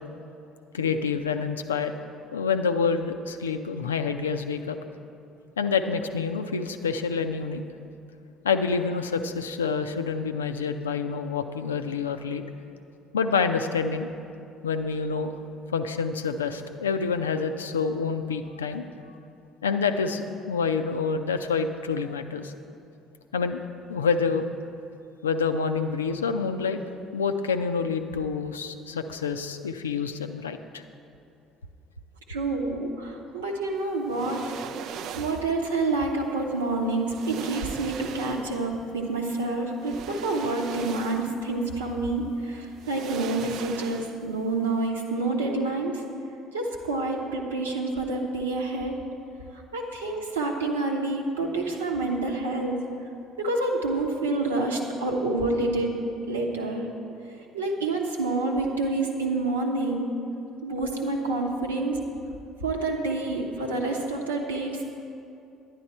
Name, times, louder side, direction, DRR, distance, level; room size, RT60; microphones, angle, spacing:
voice 1, 0.7-1.9 2.3-4.8 5.6-7.6 8.4-12.4 13.1-14.1 14.6-15.3 15.7-18.8 19.6-22.5 23.3-23.6 23.9-24.5 25.2-26.8 27.1-30.8, left 5 dB, 80° left, 8 dB, 0.4 m, -27 dB
voice 2, 32.3-34.4 35.1-46.0 46.5-48.9 49.5-52.8 53.4-55.9 56.3-56.9 57.5-60.1 60.6-62.0 62.6-64.8, right 2 dB, 80° right, 0 dB, 1.0 m, -28 dB
sound 1, 34.1-35.6 36.6-36.7 37.1-38.7 39.8-41.5 41.8-42.0 42.8-44.4 44.7-44.8, right 8 dB, 55° right, 0.4 m, -39 dB
10.5 x 10.0 x 4.2 m, 2.6 s
figure-of-eight pair, 55°, 0 cm